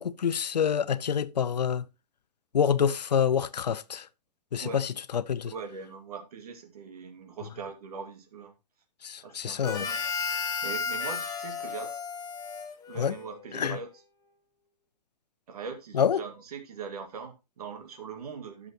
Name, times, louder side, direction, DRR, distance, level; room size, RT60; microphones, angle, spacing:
voice 1, 0.0-1.8 2.5-4.1 4.5-5.5 9.0-9.9 12.9-13.1 13.5-13.8 15.9-16.2, left 7 dB, 80° left, 0.6 m, -27 dB
voice 2, 5.5-8.5 9.2-10.1 10.6-12.0 12.9-13.9 15.5-18.7, right 5 dB, 65° right, 2.0 m, -41 dB
Harmonica, 9.6-13.4, left 5 dB, 20° left, 1.5 m, -33 dB
12.5 x 6.2 x 2.9 m
hypercardioid pair, 115°, 21 cm